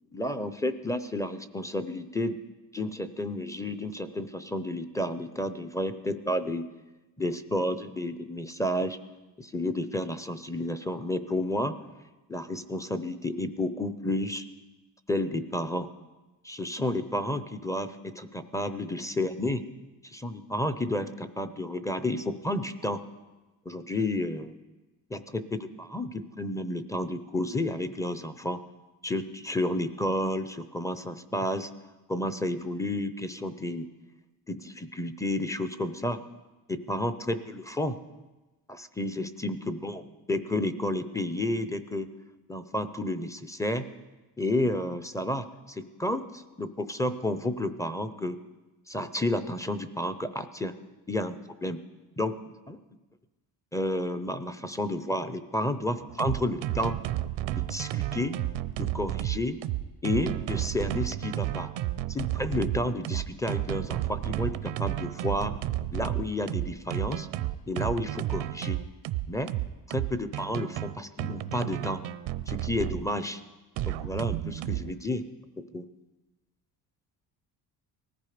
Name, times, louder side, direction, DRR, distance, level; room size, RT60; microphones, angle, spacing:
voice 1, 0.1-2.4 2.7-6.7 7.2-9.0 9.4-11.8 12.3-14.5 15.1-15.9 16.4-19.6 20.0-23.0 23.7-24.5 25.1-28.6 29.0-31.7 32.1-33.9 34.5-36.2 36.7-38.0 38.7-42.1 42.5-43.9 44.4-48.4 48.9-50.8 51.1-51.8 52.2-52.8 53.7-57.0 57.6-58.4 58.8-59.6 60.0-61.7 62.1-65.5 65.9-67.3 67.7-68.8 69.3-69.5 69.9-72.0 72.5-73.4 73.8-75.3 75.6-75.8, left 1 dB, 5° left, 11 dB, 0.6 m, -31 dB
sound 1, 56.0-73.0 73.8-74.9, right 14 dB, 90° right, 0.8 m, -32 dB
19.5 x 14.5 x 5.0 m, 1.1 s
cardioid pair, 145°, 44 cm